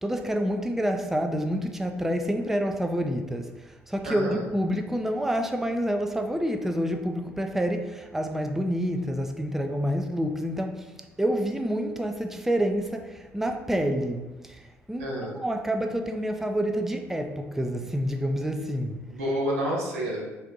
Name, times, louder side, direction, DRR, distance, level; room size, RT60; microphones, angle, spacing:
voice 1, 0.0-15.1 15.4-19.0, equal, 5° right, 5 dB, 0.4 m, -28 dB
voice 2, 4.0-4.4 15.0-15.3 19.1-20.2, equal, 80° right, -3 dB, 0.9 m, -29 dB
4.0 x 2.5 x 3.8 m, 1.1 s
hypercardioid pair, 55°, 7 cm